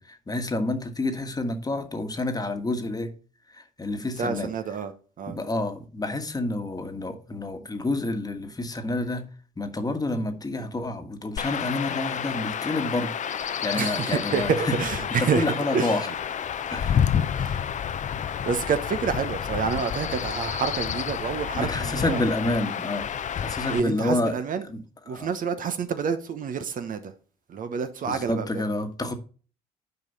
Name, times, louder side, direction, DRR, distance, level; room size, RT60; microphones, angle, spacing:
voice 1, 0.0-3.1 3.5-4.5 5.3-9.3 9.6-13.1 13.6-14.7 15.2-16.1 16.7-17.2 21.5-23.1 23.4-24.4 24.7-25.3 28.1-29.1, left 2 dB, 20° left, 1.5 m, -29 dB
voice 2, 4.0-4.9 5.2-5.4 13.7-15.5 15.7-16.0 17.3-17.7 18.4-22.2 23.7-24.6 25.1-27.1 27.5-28.6, right 6 dB, 45° right, 1.0 m, -28 dB
Chirp tweet / Wind / Stream, 11.4-23.8, left 8 dB, 40° left, 0.7 m, -29 dB
9.4 x 5.0 x 4.1 m
hypercardioid pair, 60°, 19 cm